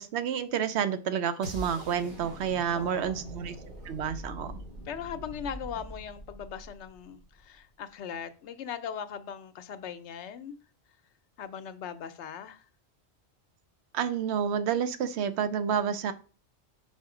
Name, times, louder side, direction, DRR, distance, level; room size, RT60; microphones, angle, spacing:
voice 1, 0.0-3.6 3.8-4.5 13.9-16.1, right 8 dB, 70° right, 0.9 m, -29 dB
sound 1, 1.4-7.4, equal, 45° right, 2.7 m, -43 dB
voice 2, 2.7-3.1 4.9-10.6 11.4-12.6, left 8 dB, 75° left, 0.9 m, -39 dB
5.0 x 4.2 x 4.8 m
omnidirectional pair, 1.2 m